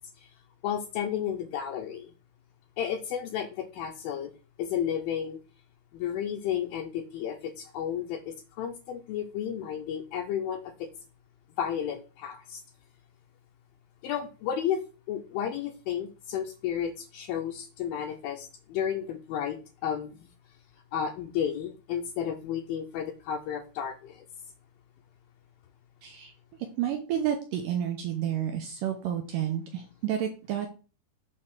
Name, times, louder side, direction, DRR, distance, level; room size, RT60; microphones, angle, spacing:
voice 1, 0.6-2.1 2.8-4.3 4.6-5.4 5.9-10.9 11.6-12.6 14.0-20.3 20.9-24.3, left 9 dB, 75° left, 3 dB, 2.3 m, -32 dB
voice 2, 26.0-26.3 26.8-30.7, right 10 dB, 75° right, 3 dB, 2.1 m, -30 dB
7.5 x 3.4 x 6.0 m, 0.35 s
omnidirectional pair, 4.7 m